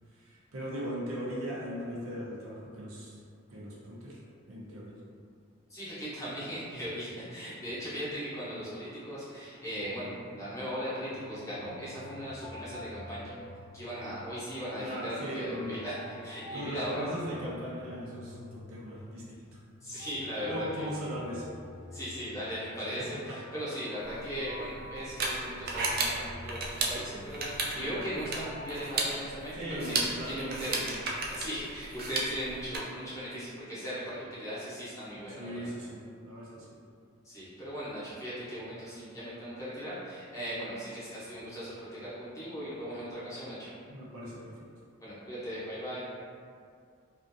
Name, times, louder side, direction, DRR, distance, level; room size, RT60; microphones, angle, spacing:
voice 1, 0.1-3.2 3.5-4.2 4.5-5.0 14.8-15.8 16.5-19.6 20.4-21.5 23.1-23.4 27.7-28.1 29.5-30.9 35.4-36.7 43.9-44.7, equal, 85° right, -5 dB, 0.6 m, -39 dB
voice 2, 5.7-13.3 13.7-17.1 19.8-21.1 21.9-30.0 30.2-30.7 31.3-35.7 37.2-43.7 45.0-46.0, equal, 15° left, -11 dB, 0.7 m, -38 dB
sound 1, 9.7-28.7, left 1 dB, 80° left, 0.3 m, -49 dB
sound 2, 24.1-32.8, right 3 dB, 45° right, 0.3 m, -34 dB
2.5 x 2.4 x 2.5 m, 2.2 s
head